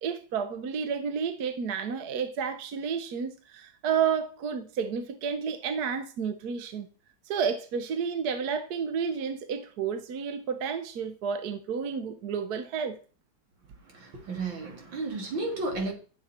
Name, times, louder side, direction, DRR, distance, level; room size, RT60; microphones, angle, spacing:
voice 1, 0.0-6.9 7.3-13.0, right 6 dB, 60° right, 1.4 m, -31 dB
voice 2, 13.8-15.9, right 2 dB, 80° right, 3.2 m, -33 dB
13.0 x 7.1 x 4.3 m
omnidirectional pair, 2.1 m